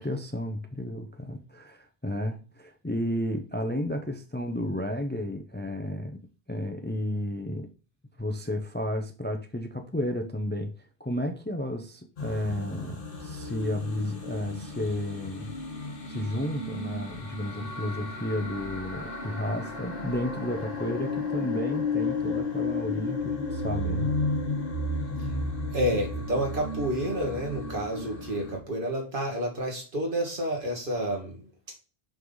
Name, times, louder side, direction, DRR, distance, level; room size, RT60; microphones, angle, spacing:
voice 1, 0.0-6.2 6.5-7.7 8.2-10.7 11.0-15.5 16.1-24.1, left 1 dB, 10° left, 0.7 m, -32 dB
sound 1, 12.2-28.6, left 3 dB, 60° left, 1.6 m, -33 dB
voice 2, 25.7-31.5, equal, 55° right, 2.1 m, -29 dB
6.0 x 5.7 x 3.9 m
omnidirectional pair, 1.0 m